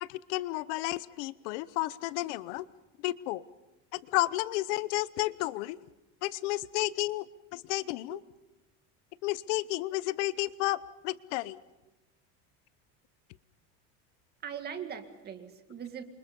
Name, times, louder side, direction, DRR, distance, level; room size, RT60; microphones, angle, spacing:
voice 1, 0.0-2.7 3.0-3.4 3.9-5.8 6.2-7.2 7.5-8.2 9.2-11.6, left 18 dB, 80° left, 18 dB, 0.9 m, -32 dB
voice 2, 14.4-16.0, right 8 dB, 30° right, 7 dB, 2.1 m, -41 dB
28.5 x 25.0 x 5.4 m, 1.0 s
cardioid pair, 160°, 34 cm